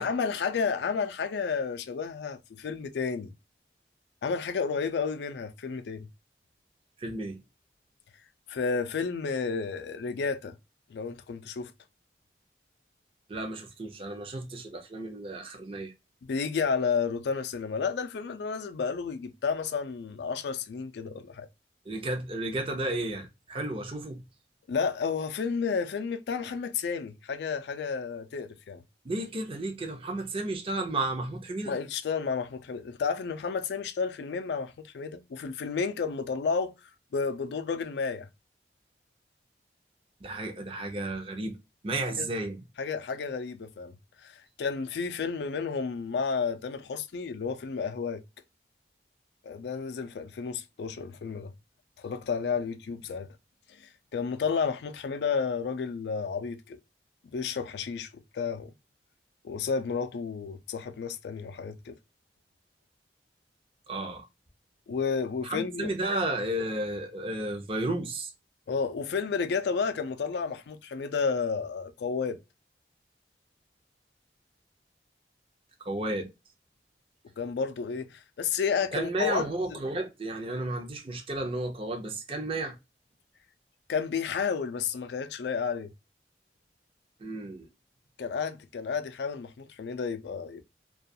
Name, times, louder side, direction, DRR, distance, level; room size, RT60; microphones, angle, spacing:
voice 1, 0.0-3.3 4.2-6.1 8.5-10.6 10.9-11.7 16.2-21.5 24.7-28.8 31.6-36.7 37.1-38.3 42.2-42.3 42.8-43.9 44.2-48.2 49.4-51.5 52.0-53.3 53.8-56.8 57.3-58.1 58.3-58.7 59.4-61.9 64.9-65.9 68.7-72.4 77.4-79.8 83.9-85.9 88.2-90.6, left 5 dB, 75° left, 0.4 m, -31 dB
voice 2, 7.0-7.4 13.3-15.9 21.9-24.2 29.0-31.7 40.2-41.6 41.8-42.6 63.9-64.3 65.4-68.3 75.8-76.3 78.9-82.7 87.2-87.7, right 2 dB, 30° right, 0.5 m, -33 dB
2.3 x 2.3 x 2.6 m
head